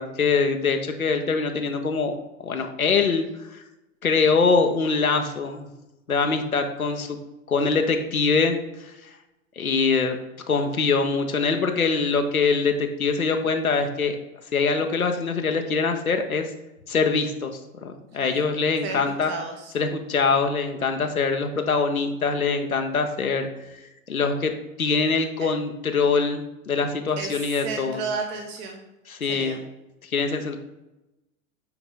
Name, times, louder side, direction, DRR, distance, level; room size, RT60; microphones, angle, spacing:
voice 1, 0.0-2.1 2.4-3.6 4.0-5.7 6.1-7.2 7.5-9.1 9.6-10.2 10.5-14.2 14.5-16.5 16.9-17.5 17.8-19.3 19.7-23.5 24.1-24.5 24.8-28.0 29.1-29.6 30.0-30.6, left 4 dB, 85° left, 5 dB, 0.8 m, -23 dB
voice 2, 18.8-19.7 25.4-25.5 27.2-28.9 29.3-29.6, right 4 dB, 35° right, 3 dB, 1.0 m, -33 dB
8.8 x 4.0 x 3.7 m, 0.97 s
figure-of-eight pair, 85°, 41 cm